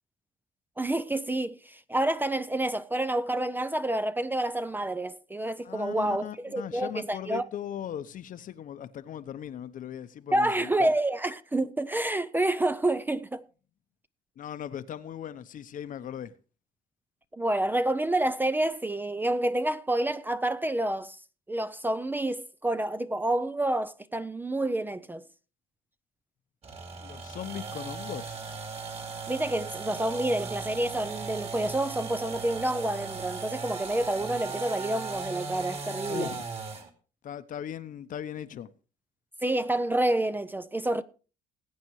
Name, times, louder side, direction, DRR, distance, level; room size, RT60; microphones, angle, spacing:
voice 1, 0.8-7.4 10.3-13.4 17.3-21.2 21.5-25.2 29.3-36.3 39.4-41.0, right 1 dB, 10° right, 0.5 m, -28 dB
voice 2, 5.6-10.9 14.4-16.3 27.0-28.4 36.1-36.5 37.2-38.7, left 10 dB, 50° left, 0.8 m, -38 dB
sound 1, 26.6-36.9, right 4 dB, 40° right, 2.6 m, -37 dB
20.5 x 8.7 x 3.1 m
cardioid pair, 110°, 17 cm